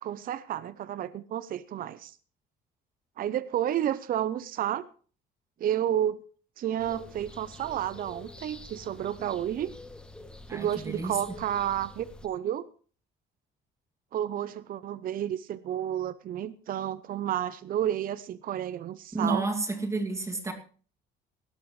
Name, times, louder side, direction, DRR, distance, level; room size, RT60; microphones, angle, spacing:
voice 1, 0.0-2.1 3.2-4.8 5.6-6.2 6.6-9.7 10.5-12.6 14.1-19.4, right 11 dB, 45° right, 16 dB, 0.6 m, -31 dB
sound 1, 6.8-12.3, left 2 dB, 5° left, 1.2 m, -47 dB
voice 2, 10.5-11.2 19.1-20.5, right 3 dB, 15° right, 3 dB, 2.4 m, -30 dB
18.5 x 12.5 x 3.2 m, 0.41 s
cardioid pair, 140°, 20 cm